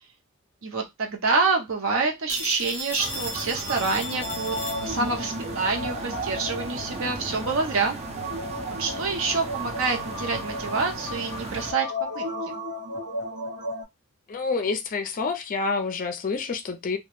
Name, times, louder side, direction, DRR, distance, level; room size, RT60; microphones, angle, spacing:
voice 1, 0.6-8.0 8.8-11.9 12.1-12.2, right 4 dB, 65° right, 0.7 m, -27 dB
Telephone, 2.3-5.3, left 1 dB, 10° left, 0.8 m, -35 dB
sound 1, 3.0-11.7, right 2 dB, 30° right, 0.5 m, -37 dB
sound 2, 4.0-13.8, equal, 85° right, 1.0 m, -34 dB
voice 2, 14.3-17.0, left 4 dB, 40° left, 0.4 m, -28 dB
2.2 x 2.0 x 2.9 m
head